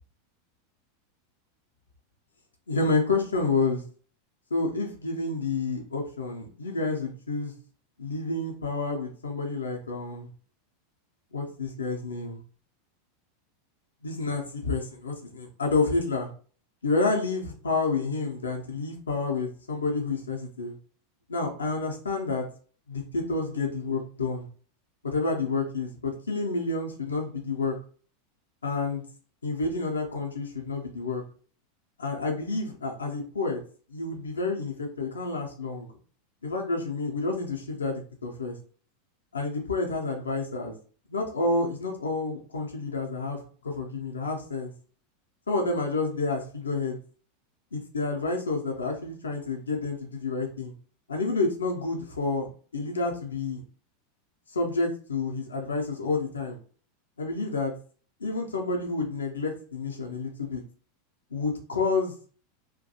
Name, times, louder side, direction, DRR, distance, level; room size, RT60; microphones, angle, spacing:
voice 1, 2.7-3.8 4.5-7.5 8.0-10.3 11.3-12.4 14.0-16.3 16.8-20.7 21.3-22.5 22.9-24.5 25.0-27.7 28.6-29.0 29.4-31.2 32.0-33.6 33.9-35.9 36.4-38.6 39.3-40.8 41.1-44.7 45.5-47.0 47.7-50.7 51.1-52.5 52.7-53.6 54.5-56.6 57.2-57.7 58.2-60.6 61.3-62.1, left 3 dB, 75° left, 1 dB, 0.5 m, -29 dB
2.5 x 2.2 x 2.7 m, 0.43 s
figure-of-eight pair, 85°, 0 cm